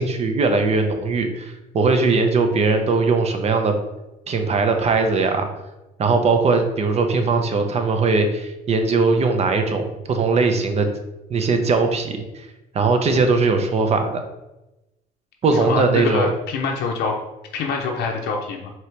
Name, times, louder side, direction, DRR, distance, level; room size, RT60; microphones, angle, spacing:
voice 1, 0.0-3.7 4.3-5.5 6.0-10.9 11.3-12.4 12.7-14.2 15.4-16.3, right 4 dB, 40° right, 6 dB, 0.6 m, -20 dB
voice 2, 15.6-17.2 17.5-18.7, left 4 dB, 80° left, 1 dB, 0.6 m, -25 dB
4.5 x 2.9 x 3.3 m, 0.98 s
cardioid pair, 110°, 17 cm